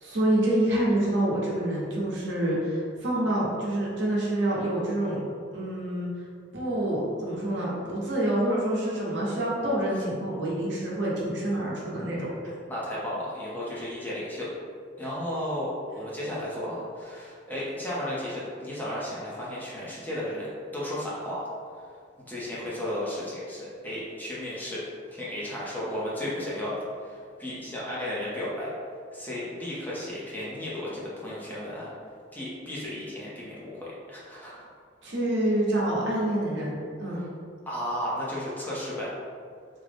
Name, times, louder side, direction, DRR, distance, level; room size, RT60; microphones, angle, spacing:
voice 1, 0.0-5.2 5.5-6.1 6.5-12.3 35.0-37.2, right 1 dB, 75° right, -5 dB, 0.9 m, -27 dB
voice 2, 12.7-14.5 15.0-21.5 22.3-24.8 25.1-28.7 29.1-31.9 32.3-34.7 37.2-37.3 37.7-39.1, left 1 dB, 10° left, -8 dB, 0.6 m, -34 dB
3.7 x 2.1 x 3.3 m, 2.2 s
head